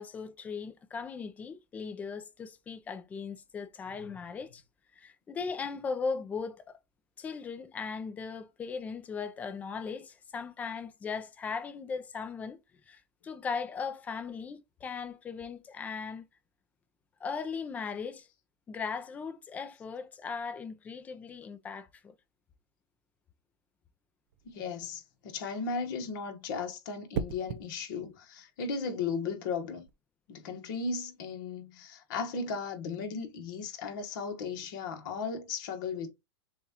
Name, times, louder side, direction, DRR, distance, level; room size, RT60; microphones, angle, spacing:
voice 1, 0.0-4.6 4.9-6.7 7.2-12.6 12.9-16.2 17.2-18.3 18.7-22.1, left 5 dB, 10° left, 0.4 m, -38 dB
sound 1, 24.3-24.7 27.1-27.7 29.6-29.9, right 8 dB, 50° right, 0.5 m, -36 dB
voice 2, 24.4-29.9 30.3-36.1, left 5 dB, 50° left, 1.2 m, -36 dB
6.9 x 2.4 x 2.8 m
supercardioid pair, 160°, 14 cm